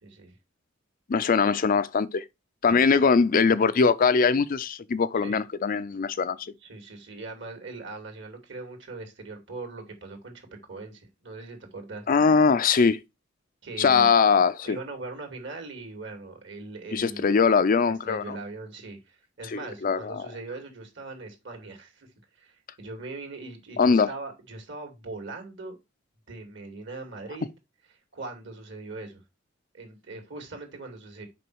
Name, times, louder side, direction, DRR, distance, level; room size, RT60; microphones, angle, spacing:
voice 1, 0.0-0.4 2.7-3.1 5.2-5.4 6.6-12.1 13.6-14.3 14.6-17.3 18.0-25.8 26.3-27.5 28.1-29.2 29.7-31.3, right 3 dB, 65° right, 2.5 m, -40 dB
voice 2, 1.1-2.2 2.6-6.5 12.1-13.0 13.8-14.8 16.9-18.4 19.5-20.3 23.8-24.1, left 5 dB, 45° left, 0.4 m, -22 dB
6.1 x 5.1 x 4.7 m
head